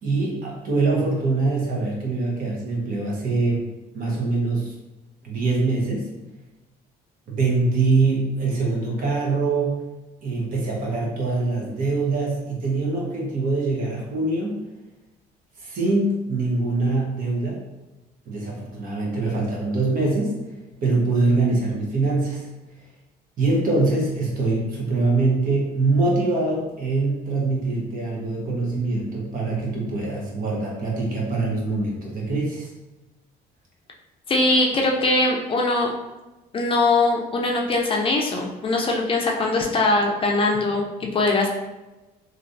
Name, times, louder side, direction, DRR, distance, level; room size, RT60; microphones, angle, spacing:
voice 1, 0.0-3.6 3.9-4.7 5.2-6.1 7.3-9.8 10.2-14.6 15.6-17.6 18.3-20.4 20.8-22.5 23.4-32.7, right 3 dB, 55° right, -2 dB, 1.0 m, -23 dB
voice 2, 34.3-35.9 36.5-41.5, left 2 dB, 30° left, 0 dB, 0.5 m, -21 dB
3.0 x 2.5 x 2.6 m, 1.1 s
cardioid pair, 110°, 17 cm